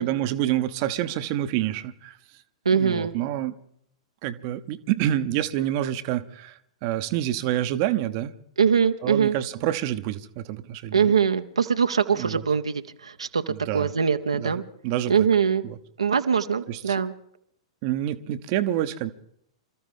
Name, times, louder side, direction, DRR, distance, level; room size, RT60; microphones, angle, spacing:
voice 1, 0.0-2.1 2.7-3.6 4.2-8.3 9.0-11.1 12.1-12.4 13.5-13.9 14.4-15.1 15.6-15.8 16.7-17.0 17.8-19.1, right 12 dB, 40° right, 0.8 m, -27 dB
voice 2, 2.6-3.2 8.6-9.4 10.9-14.6 15.1-15.6 16.0-17.1, right 6 dB, 75° right, 0.8 m, -22 dB
27.5 x 13.5 x 3.7 m
figure-of-eight pair, 105°, 3 cm